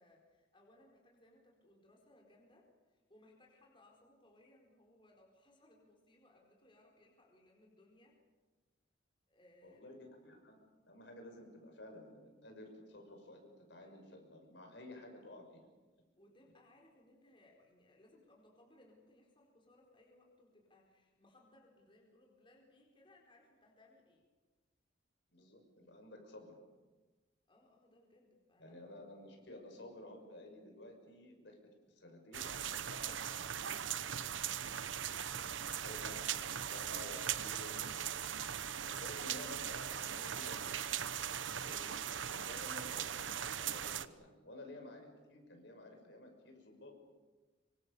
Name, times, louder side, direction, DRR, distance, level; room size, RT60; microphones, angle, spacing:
voice 1, 0.0-8.2 9.3-10.0 16.1-24.2 27.5-28.9 34.6-34.8, left 1 dB, 25° left, -1 dB, 4.6 m, -66 dB
voice 2, 9.6-10.6 10.8-15.6 25.3-26.6 28.6-31.6 31.9-34.0 35.7-38.0 38.7-47.0, left 1 dB, 65° left, 3 dB, 6.0 m, -53 dB
sound 1, 32.3-44.1, right 9 dB, 80° right, 1.0 m, -39 dB
26.5 x 25.0 x 6.9 m, 1.3 s
head